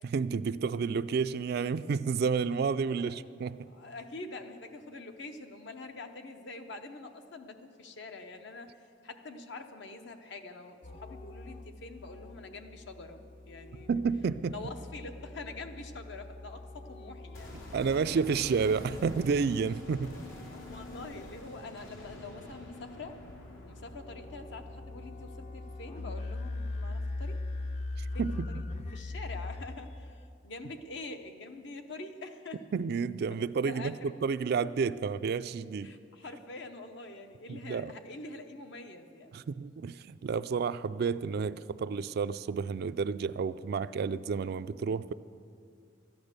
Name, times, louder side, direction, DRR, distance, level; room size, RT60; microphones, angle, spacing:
voice 1, 0.0-3.7 13.9-14.5 17.7-20.1 28.0-28.5 32.7-35.9 37.5-37.9 39.3-45.1, right 5 dB, 55° right, 14 dB, 0.3 m, -30 dB
voice 2, 2.8-3.2 3.7-13.9 14.5-17.5 20.5-23.2 23.6-27.4 28.1-28.6 28.9-32.6 33.3-33.4 33.6-34.1 35.8-39.3, left 3 dB, 65° left, 6 dB, 0.9 m, -45 dB
sound 1, 10.8-30.3, left 2 dB, 35° left, 0.6 m, -42 dB
sound 2, 17.3-27.3 27.6-27.7, equal, 85° left, 3.4 m, -49 dB
13.0 x 10.5 x 6.6 m, 2.4 s
head